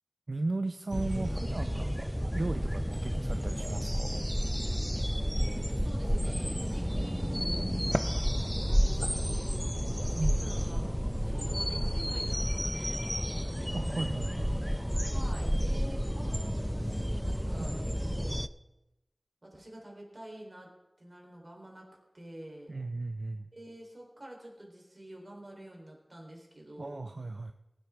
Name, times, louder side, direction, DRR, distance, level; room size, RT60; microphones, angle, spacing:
voice 1, 0.3-4.3 10.2-10.4 13.7-14.5 17.6-17.7 22.7-23.5 26.8-27.5, right 2 dB, 75° right, 7 dB, 0.5 m, -36 dB
sound 1, 0.9-18.5, equal, ahead, 0.5 m, -31 dB
voice 2, 5.4-7.7 8.2-10.8 11.2-13.1 14.0-14.2 14.9-18.4 19.4-20.7 21.0-21.9 22.1-22.8 23.5-27.1, right 1 dB, 50° right, -1 dB, 3.6 m, -48 dB
20.0 x 8.9 x 3.5 m, 0.96 s
wide cardioid pair, 50°, 0 cm